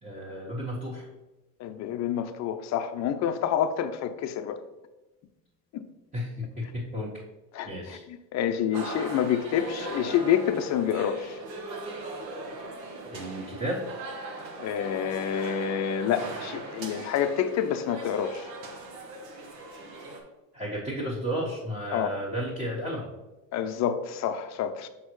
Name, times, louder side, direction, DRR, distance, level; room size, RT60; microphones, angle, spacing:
voice 1, 0.0-1.1 6.1-7.1 7.6-8.0 13.1-13.8 20.5-23.1, equal, 15° right, -7 dB, 1.6 m, -33 dB
voice 2, 1.6-4.6 5.7-5.8 7.5-11.4 14.6-18.5 21.9-22.2 23.5-24.9, left 9 dB, 35° left, 9 dB, 0.5 m, -28 dB
sound 1, 8.7-20.2, right 2 dB, 85° right, 1.4 m, -39 dB
6.1 x 5.4 x 3.1 m, 1.1 s
supercardioid pair, 105°, 50 cm